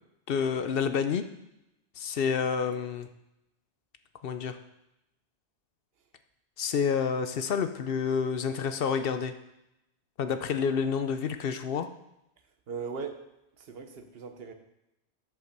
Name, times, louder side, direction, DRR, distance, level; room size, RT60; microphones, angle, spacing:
voice 1, 0.3-1.2 2.0-3.1 4.2-4.6 6.6-9.3 10.2-11.9, left 6 dB, 65° left, 9 dB, 0.8 m, -29 dB
voice 2, 12.7-14.5, right 5 dB, 65° right, 7 dB, 1.0 m, -39 dB
8.3 x 5.4 x 6.6 m, 0.88 s
omnidirectional pair, 1.1 m